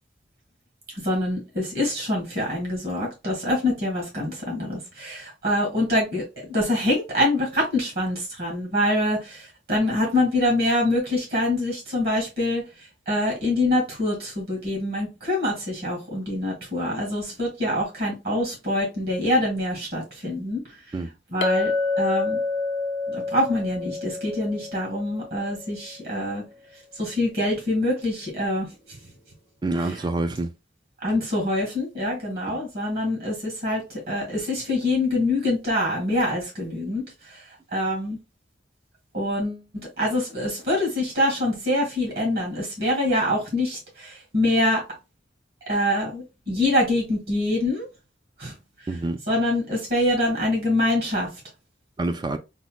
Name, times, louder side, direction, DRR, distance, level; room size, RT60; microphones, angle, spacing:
voice 1, 1.0-6.2 6.5-12.6 13.1-20.6 21.3-21.7 22.0-22.4 23.1-26.4 27.0-28.7 29.8-30.0 31.0-37.4 37.7-38.2 39.1-39.6 40.0-44.8 45.7-47.9 48.4-48.5 49.3-51.3, left 1 dB, 55° right, 1.6 m, -25 dB
Chink clink, 21.4-25.9, left 3 dB, 75° left, 0.5 m, -28 dB
voice 2, 29.6-30.5 32.5-32.6 48.9-49.2 52.0-52.4, right 2 dB, 25° right, 0.3 m, -27 dB
3.9 x 2.1 x 2.2 m
head